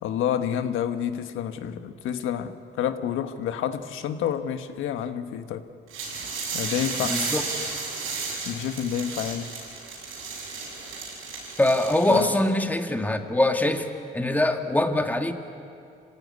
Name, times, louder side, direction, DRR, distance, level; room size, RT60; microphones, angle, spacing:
voice 1, 0.0-5.6 6.5-7.2 8.4-9.5 12.1-12.4, left 9 dB, 85° left, 9 dB, 1.4 m, -29 dB
sound 1, 5.9-12.4, right 4 dB, 90° right, 7.2 m, -33 dB
voice 2, 7.0-7.4 11.6-13.9 14.1-15.3, left 1 dB, 10° left, 6 dB, 1.8 m, -23 dB
26.5 x 16.0 x 9.5 m, 2.5 s
cardioid pair, 90°, 20 cm